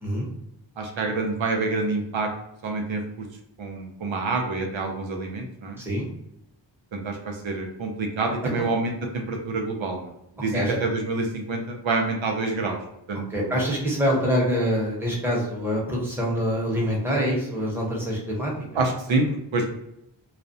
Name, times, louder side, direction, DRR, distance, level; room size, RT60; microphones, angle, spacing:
voice 1, 0.8-2.3 2.6-3.0 3.6-5.8 6.9-10.1 10.4-12.8 13.1-13.5 18.7-19.3 19.5-19.7, right 3 dB, 85° right, 3 dB, 0.6 m, -27 dB
voice 2, 5.8-6.1 10.5-10.8 13.3-18.5, equal, 5° right, -4 dB, 0.8 m, -25 dB
2.3 x 2.0 x 2.6 m, 0.83 s
wide cardioid pair, 55°, 45 cm